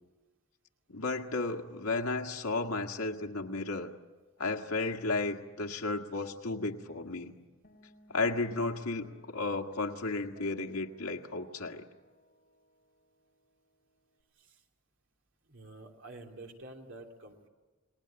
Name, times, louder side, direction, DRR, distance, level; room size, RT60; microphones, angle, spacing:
voice 1, 0.9-3.9 4.4-7.4 8.1-11.9, left 3 dB, 90° left, 2 dB, 1.8 m, -33 dB
Guitar, 7.6-14.2, left 1 dB, 40° left, 5.0 m, -61 dB
voice 2, 15.5-17.5, right 2 dB, 60° right, 2 dB, 2.8 m, -48 dB
29.5 x 19.0 x 8.8 m, 1.3 s
head